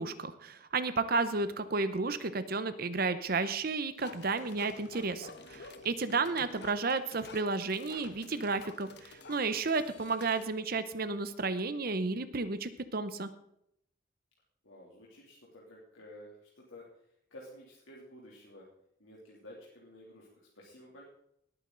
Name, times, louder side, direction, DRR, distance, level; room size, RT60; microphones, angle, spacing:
voice 1, 0.0-13.3, right 3 dB, 45° right, 12 dB, 0.8 m, -32 dB
sound 1, 4.0-10.5, left 3 dB, 55° left, 1.4 m, -51 dB
voice 2, 14.6-16.9 17.3-18.7 19.0-21.0, left 1 dB, 85° left, -4 dB, 3.0 m, -52 dB
19.5 x 8.8 x 3.9 m, 0.75 s
head